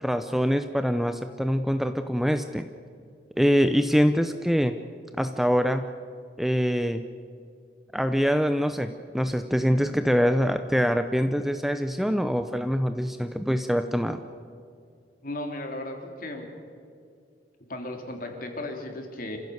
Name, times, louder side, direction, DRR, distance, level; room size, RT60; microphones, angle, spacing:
voice 1, 0.0-2.7 3.4-4.7 5.2-5.9 6.4-7.0 7.9-14.2, equal, ahead, 9 dB, 0.6 m, -24 dB
voice 2, 15.2-16.5 17.7-19.4, left 1 dB, 50° left, 3 dB, 3.4 m, -35 dB
27.5 x 15.5 x 7.9 m, 2.4 s
head